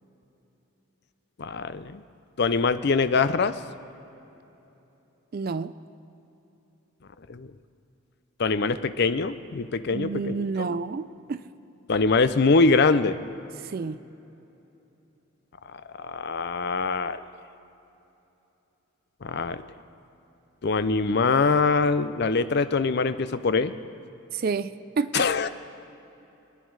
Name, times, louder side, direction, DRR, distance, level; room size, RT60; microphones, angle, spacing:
voice 1, 1.4-2.0 2.4-3.6 7.3-7.5 8.4-10.7 11.9-13.2 15.7-17.2 19.2-19.7 20.6-23.7 25.1-25.5, left 4 dB, 50° left, 12 dB, 0.5 m, -23 dB
voice 2, 5.3-5.7 9.9-11.4 13.6-14.0 24.3-25.3, right 4 dB, 45° right, 14 dB, 0.4 m, -29 dB
24.0 x 10.0 x 4.7 m, 3.0 s
head